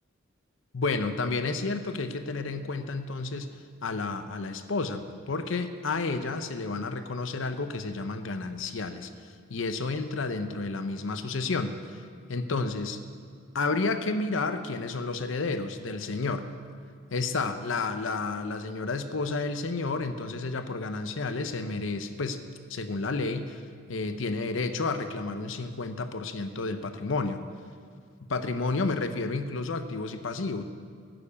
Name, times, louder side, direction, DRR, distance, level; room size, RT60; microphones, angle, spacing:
voice 1, 0.7-9.1 9.5-12.0 12.3-13.0 13.5-16.5 17.1-22.4 22.7-23.6 23.9-27.4 28.3-30.6, left 3 dB, 65° left, 9 dB, 0.7 m, -31 dB
12.0 x 6.9 x 8.5 m, 2.1 s
head